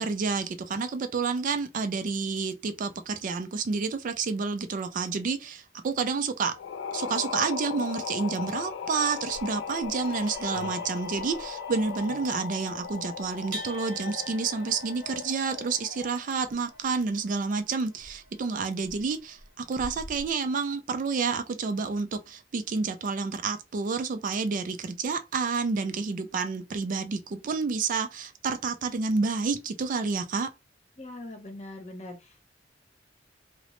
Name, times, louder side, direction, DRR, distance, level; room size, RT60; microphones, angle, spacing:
voice 1, 0.0-6.6 6.9-30.5, right 4 dB, 45° right, 0.3 m, -29 dB
sound 1, 6.5-16.3, left 6 dB, 75° left, 0.4 m, -37 dB
sound 2, 9.2-20.3, equal, 70° right, 0.9 m, -47 dB
voice 2, 31.0-32.5, left 1 dB, 35° left, 0.8 m, -42 dB
2.9 x 2.0 x 3.0 m
head